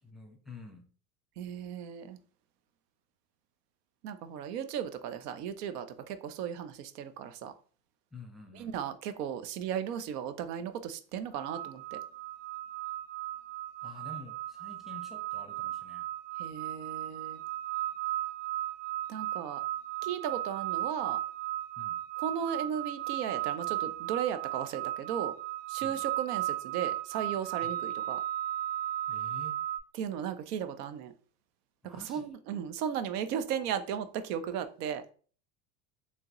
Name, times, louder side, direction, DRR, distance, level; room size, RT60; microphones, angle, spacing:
voice 1, 0.0-0.9 8.1-8.8 13.8-16.1 21.8-22.0 25.8-26.0 29.1-29.6 31.8-32.3, left 2 dB, ahead, 0.7 m, -49 dB
voice 2, 1.4-2.2 4.0-7.5 8.6-12.0 16.4-17.4 19.1-19.6 20.0-21.2 22.2-25.3 25.7-28.2 30.0-31.1 32.1-35.0, right 8 dB, 85° right, 0.6 m, -36 dB
sound 1, 11.4-29.8, right 14 dB, 65° right, 1.0 m, -35 dB
3.4 x 2.9 x 2.9 m
supercardioid pair, 85°, 46 cm